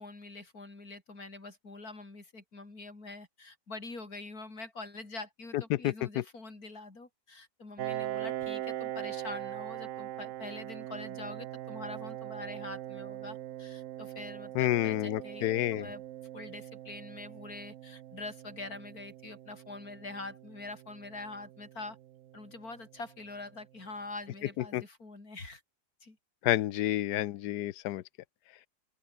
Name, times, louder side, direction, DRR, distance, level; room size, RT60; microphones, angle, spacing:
voice 1, 0.0-15.5 15.7-16.0 16.3-22.0 22.3-25.6 26.0-26.2, left 3 dB, 65° left, 5.4 m, -45 dB
voice 2, 5.8-6.2 14.5-15.9 24.7-24.8 26.4-28.0, left 14 dB, 80° left, 1.2 m, -29 dB
Piano, 7.8-23.1, right 13 dB, 65° right, 0.8 m, -41 dB
open air
omnidirectional pair, 1.7 m